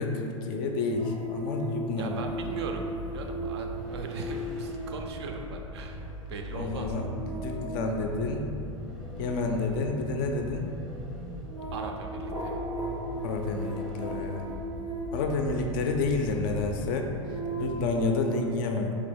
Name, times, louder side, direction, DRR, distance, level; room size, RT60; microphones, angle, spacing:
voice 1, 0.0-2.2 6.5-8.5 9.2-10.7 13.2-14.4 15.1-17.1 17.6-19.0, left 3 dB, 40° left, 3 dB, 0.4 m, -29 dB
sound 1, 1.0-16.1 16.7-18.1, right 1 dB, 90° right, 0.7 m, -38 dB
voice 2, 1.9-2.8 3.1-7.0 11.7-12.6, right 4 dB, 55° right, 3 dB, 0.4 m, -39 dB
Vehicle, 2.2-18.1, left 1 dB, ahead, 0.6 m, -41 dB
3.3 x 2.7 x 3.3 m, 2.6 s
figure-of-eight pair, 95°, 17 cm